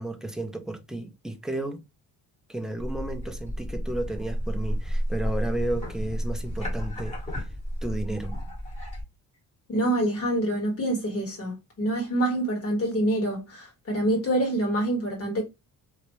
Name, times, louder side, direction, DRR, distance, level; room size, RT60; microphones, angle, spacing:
voice 1, 0.0-1.8 2.5-7.2 7.8-8.4, right 1 dB, ahead, 0.4 m, -33 dB
sound 1, 2.8-9.0, equal, 20° left, 1.4 m, -31 dB
voice 2, 9.7-15.4, right 1 dB, 40° left, 1.8 m, -26 dB
3.1 x 2.6 x 3.1 m
cardioid pair, 155°, 36 cm